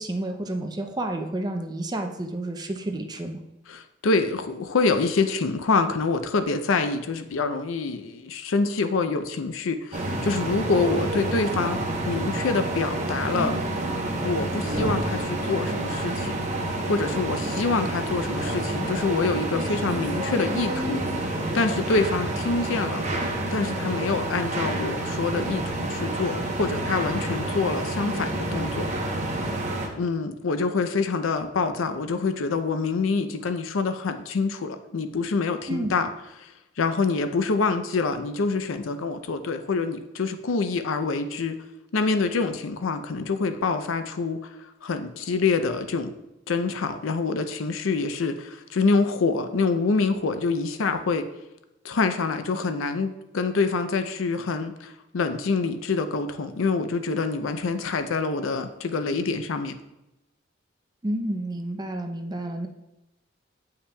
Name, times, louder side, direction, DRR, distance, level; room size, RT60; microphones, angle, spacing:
voice 1, 0.0-3.4 35.7-35.9 61.0-62.7, right 1 dB, 20° right, 4 dB, 0.5 m, -30 dB
voice 2, 3.7-11.8 12.1-13.5 14.2-16.4 16.8-23.0 23.5-28.9 30.0-36.1 36.4-36.5 36.8-41.6 41.9-44.5 44.8-46.1 46.5-51.3 51.8-59.8, left 4 dB, 90° left, 9 dB, 0.5 m, -26 dB
sound 1, 9.9-29.9, right 1 dB, 35° right, 0.9 m, -28 dB
8.4 x 5.6 x 2.3 m, 0.93 s
head